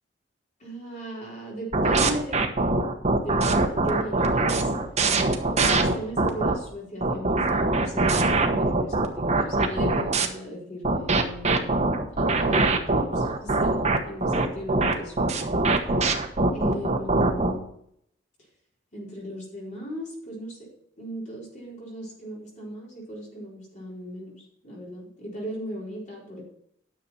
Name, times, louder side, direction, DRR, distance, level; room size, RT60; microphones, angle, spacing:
voice 1, 0.6-2.5 2.9-3.5 3.8-4.6 5.5-11.8 12.2-15.5 16.5-17.6 18.9-20.7 21.0-24.4 24.6-26.4, equal, 40° left, -4 dB, 4.5 m, -37 dB
sound 1, 1.7-6.5 7.0-10.3 10.8-17.5, right 3 dB, 35° right, 1.1 m, -22 dB
10.0 x 6.8 x 5.7 m, 0.69 s
head